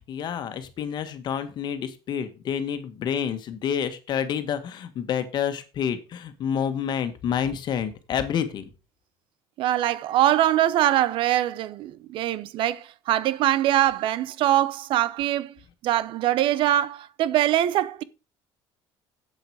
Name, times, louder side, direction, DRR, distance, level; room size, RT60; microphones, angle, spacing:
voice 1, 0.1-8.6, left 8 dB, 50° left, 1.7 m, -28 dB
voice 2, 9.6-15.5 15.8-18.0, right 13 dB, 65° right, 0.7 m, -23 dB
8.0 x 7.9 x 4.9 m
cardioid pair, 125°, 9 cm